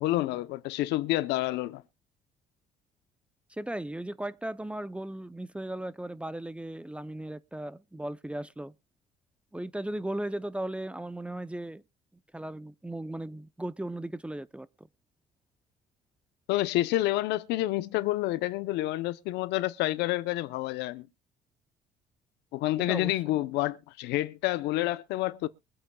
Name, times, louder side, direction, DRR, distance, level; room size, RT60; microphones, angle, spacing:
voice 1, 0.0-1.8 16.5-21.1 22.5-25.5, left 16 dB, 90° left, 0.8 m, -29 dB
voice 2, 3.5-8.7 9.5-11.8 12.3-14.9 22.9-23.2, right 1 dB, 5° right, 0.6 m, -36 dB
23.5 x 8.8 x 2.3 m
cardioid pair, 110°, 17 cm